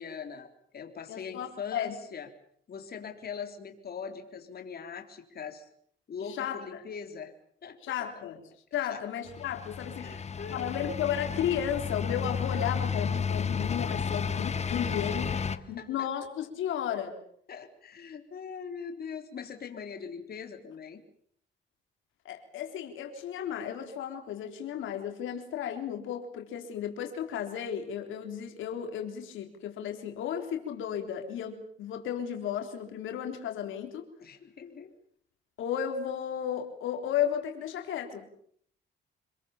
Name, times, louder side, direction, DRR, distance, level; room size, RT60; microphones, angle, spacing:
voice 1, 0.0-2.3 2.7-5.7 6.1-7.3 7.6-8.0 8.9-9.0 10.0-10.7 15.3-16.1 17.5-21.0 34.2-34.9, left 6 dB, 50° left, 5 dB, 3.6 m, -42 dB
voice 2, 1.1-2.0 6.2-6.8 7.8-8.4 8.7-15.3 15.7-17.2 22.3-34.1 35.6-38.2, left 9 dB, 85° left, 4 dB, 3.8 m, -34 dB
sound 1, 9.3-15.6, left 6 dB, 35° left, 1.6 m, -32 dB
27.0 x 21.5 x 7.2 m, 0.64 s
cardioid pair, 90°, 20 cm